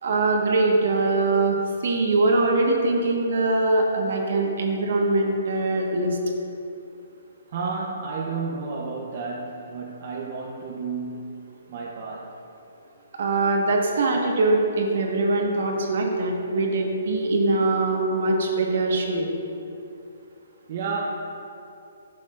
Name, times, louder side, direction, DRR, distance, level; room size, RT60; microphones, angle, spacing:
voice 1, 0.0-6.2 13.1-19.3, right 2 dB, 65° right, 1 dB, 1.3 m, -22 dB
voice 2, 7.5-12.3 20.7-21.0, right 4 dB, 45° right, -2 dB, 0.7 m, -32 dB
11.5 x 6.5 x 2.5 m, 2.7 s
hypercardioid pair, 155°, 0 cm